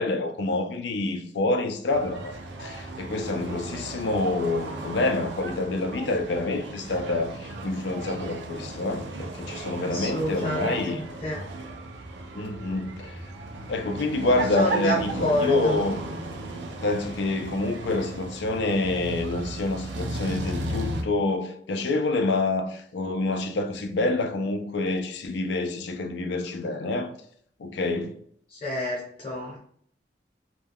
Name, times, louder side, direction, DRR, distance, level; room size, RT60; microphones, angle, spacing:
voice 1, 0.0-11.0 12.3-13.2 13.7-16.0 16.8-27.1 27.6-28.2, left 2 dB, 75° left, 0.4 m, -27 dB
sound 1, 1.9-21.0, right 2 dB, 85° right, 0.5 m, -35 dB
voice 2, 9.8-11.5 14.5-15.8 28.5-29.6, equal, 30° left, 0.8 m, -29 dB
2.2 x 2.2 x 3.3 m
head